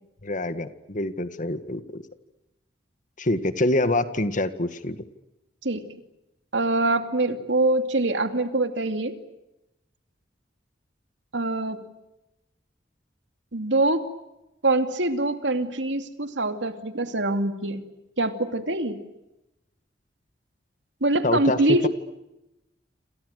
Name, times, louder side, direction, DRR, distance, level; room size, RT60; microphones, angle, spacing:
voice 1, 0.2-2.0 3.2-5.0 21.2-21.6, left 2 dB, 45° left, 11 dB, 1.9 m, -26 dB
voice 2, 6.5-9.2 11.3-11.8 13.5-14.0 14.6-17.8 18.2-19.0 21.0-21.9, right 2 dB, 90° right, 8 dB, 2.7 m, -24 dB
28.5 x 27.5 x 6.6 m, 0.92 s
head